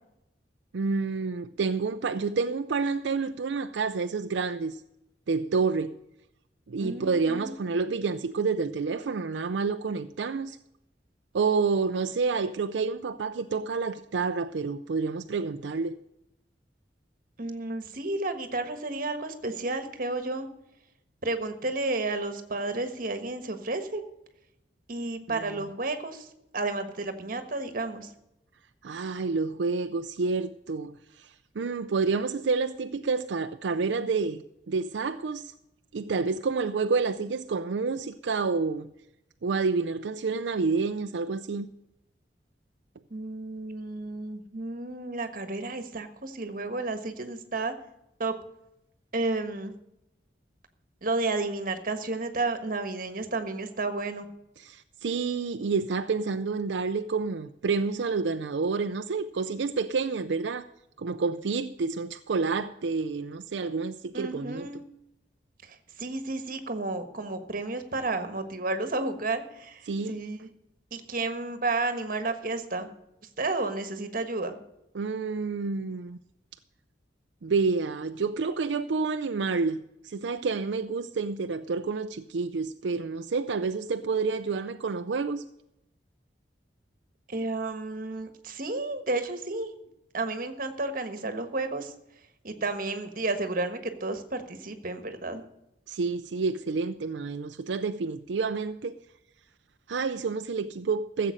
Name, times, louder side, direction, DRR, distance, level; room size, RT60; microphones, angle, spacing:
voice 1, 0.7-4.8 5.3-6.0 6.7-10.6 11.3-16.0 28.8-34.4 34.7-35.5 35.9-38.9 39.4-41.7 54.6-60.7 61.0-64.7 69.9-70.2 74.9-76.2 77.4-79.8 80.0-85.4 95.9-99.0 99.9-101.3, right 4 dB, 80° right, 0.5 m, -29 dB
voice 2, 6.8-7.6 17.4-20.5 21.2-24.0 24.9-26.3 26.5-28.1 43.1-47.7 48.2-48.3 49.1-49.7 51.0-54.3 64.1-64.8 65.6-70.5 70.9-72.9 73.4-74.6 87.3-89.7 90.1-91.9 92.4-95.4, right 2 dB, 50° right, 1.4 m, -32 dB
15.0 x 7.6 x 6.4 m
head